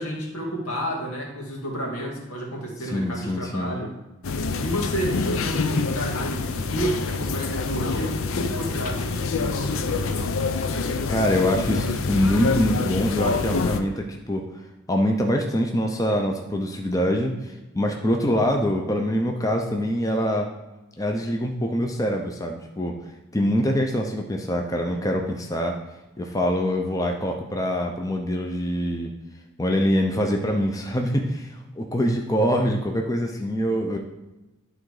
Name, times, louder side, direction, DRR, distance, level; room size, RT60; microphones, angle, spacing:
voice 1, 0.0-3.9 4.6-10.3, right 1 dB, 85° left, -2 dB, 2.2 m, -31 dB
voice 2, 2.8-3.8 11.1-14.5 14.9-20.5 21.0-22.9 23.3-25.8 26.2-29.1 29.6-34.0, equal, 15° left, 2 dB, 0.6 m, -24 dB
sound 1, 4.2-13.8, left 4 dB, 70° left, 0.6 m, -26 dB
11.0 x 3.9 x 4.8 m, 1.0 s
head